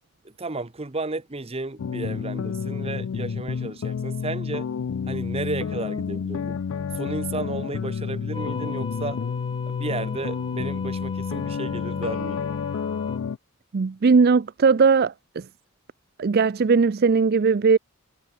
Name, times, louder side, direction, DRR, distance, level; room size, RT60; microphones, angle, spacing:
voice 1, 0.2-4.7 5.1-6.6 6.9-9.2 9.7-12.5, right 2 dB, 25° right, 0.9 m, -33 dB
sound 1, 1.8-13.4, left 6 dB, 60° left, 0.4 m, -30 dB
sound 2, 8.3-13.2, left 3 dB, 20° left, 2.0 m, -39 dB
voice 2, 13.7-15.5 16.2-17.8, right 5 dB, 45° right, 0.4 m, -19 dB
head